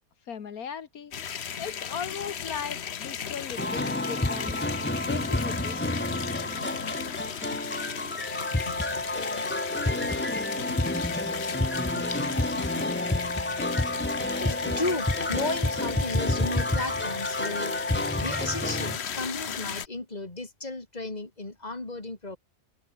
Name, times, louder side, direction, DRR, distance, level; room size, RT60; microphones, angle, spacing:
voice 1, 0.3-1.1 1.6-6.0, left 7 dB, 85° left, 1.9 m, -38 dB
sound 1, 1.1-19.9, left 8 dB, 50° left, 1.1 m, -36 dB
sound 2, 3.6-19.0, left 1 dB, 10° left, 0.9 m, -29 dB
voice 2, 14.4-17.7 18.2-22.4, left 2 dB, 30° left, 3.2 m, -34 dB
omnidirectional pair, 1.5 m